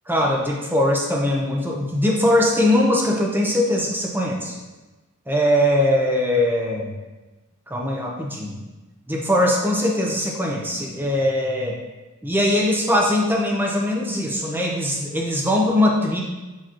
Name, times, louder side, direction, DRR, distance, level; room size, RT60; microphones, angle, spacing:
voice 1, 0.1-4.6 5.3-6.9 7.7-8.6 9.1-11.8 12.2-16.2, left 1 dB, 10° right, -1 dB, 0.8 m, -21 dB
7.5 x 4.7 x 3.0 m, 1.1 s
head